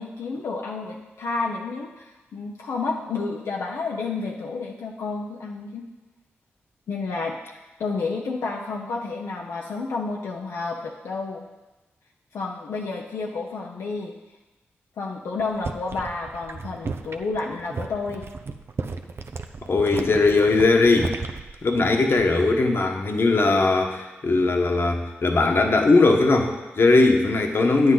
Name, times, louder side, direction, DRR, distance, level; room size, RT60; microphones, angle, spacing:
voice 1, 0.0-5.8 6.9-7.4 7.8-11.4 12.3-14.1 15.0-18.3, left 4 dB, 85° left, -1 dB, 0.8 m, -30 dB
sound 1, 15.4-22.5 22.8-23.2, right 4 dB, 55° right, 0.7 m, -35 dB
voice 2, 19.7-21.1 21.6-27.9, left 3 dB, 55° left, 3 dB, 1.3 m, -19 dB
9.5 x 8.0 x 4.0 m, 1.1 s
cardioid pair, 55°, 5 cm